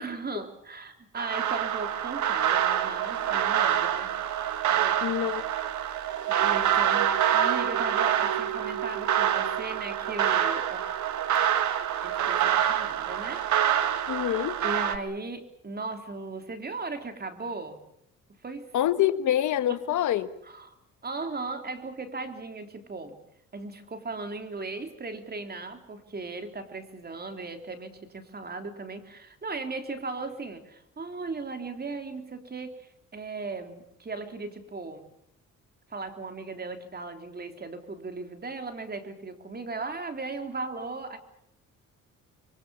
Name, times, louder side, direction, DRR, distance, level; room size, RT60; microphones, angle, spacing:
voice 1, 0.0-4.1 4.7-5.4 5.9-10.8 12.0-13.5 14.6-17.8 18.4-18.7 19.7-19.8 20.4-20.7 21.0-23.2 23.5-35.1 35.9-41.2, right 3 dB, 30° right, 6 dB, 3.6 m, -37 dB
sound 1, 1.2-15.0, right 10 dB, 75° right, 1.9 m, -26 dB
voice 2, 5.0-5.4 14.1-14.6 18.7-20.3, left 12 dB, 75° left, 12 dB, 1.4 m, -25 dB
25.0 x 24.0 x 7.2 m, 0.72 s
cardioid pair, 90°, 30 cm